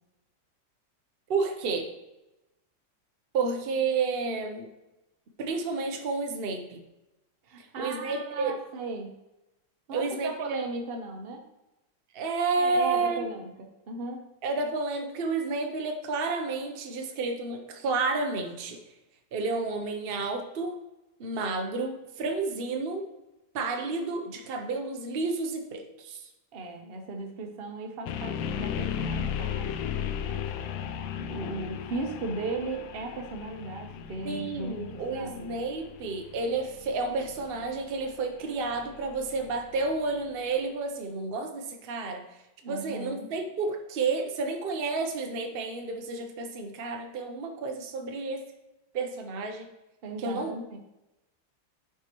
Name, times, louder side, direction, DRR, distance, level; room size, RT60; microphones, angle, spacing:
voice 1, 1.3-1.9 3.3-4.7 5.4-6.8 7.6-8.5 9.9-10.6 12.1-13.3 14.4-18.8 19.3-20.8 21.2-23.1 23.5-26.3 34.2-42.2 42.7-48.4 48.9-49.7 50.2-50.5, right 3 dB, 70° right, 4 dB, 0.5 m, -31 dB
voice 2, 7.4-9.1 9.9-11.5 12.5-14.3 26.5-35.5 42.6-43.3 50.0-50.8, right 3 dB, 45° right, 3 dB, 0.8 m, -37 dB
sound 1, 28.1-40.0, left 8 dB, 90° left, 1.3 m, -36 dB
9.5 x 4.7 x 3.0 m, 0.97 s
omnidirectional pair, 2.0 m